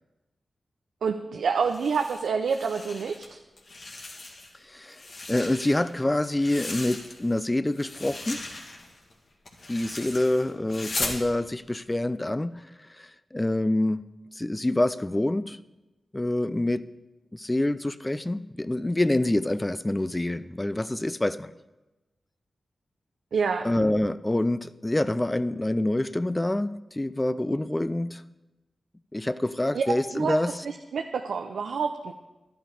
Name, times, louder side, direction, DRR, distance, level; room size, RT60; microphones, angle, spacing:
voice 1, 1.0-3.4 23.3-23.7 29.7-32.1, right 5 dB, 85° right, 5 dB, 0.6 m, -28 dB
sound 1, 1.6-3.3 3.6-4.6 4.9-7.4 7.7-11.2, left 2 dB, 70° left, 2.3 m, -38 dB
voice 2, 4.7-5.0 5.3-8.4 9.7-12.6 13.0-14.1 14.3-15.6 16.1-16.8 17.3-21.5 23.6-28.2 29.1-30.5, left 1 dB, 20° left, 14 dB, 0.6 m, -26 dB
12.0 x 11.5 x 4.9 m, 1.1 s
cardioid pair, 40°, 0 cm